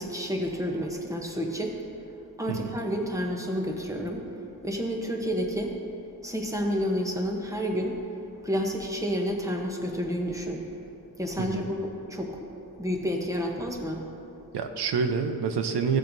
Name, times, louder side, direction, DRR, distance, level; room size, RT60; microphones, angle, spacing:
voice 1, 0.0-1.8 2.4-4.2 4.6-5.8 6.2-8.0 8.4-10.6 11.2-12.4 12.8-14.0, equal, 10° right, 1 dB, 0.9 m, -30 dB
voice 2, 14.5-16.0, right 5 dB, 85° right, 7 dB, 0.8 m, -27 dB
15.0 x 7.5 x 2.7 m, 2.8 s
wide cardioid pair, 155°, 40 cm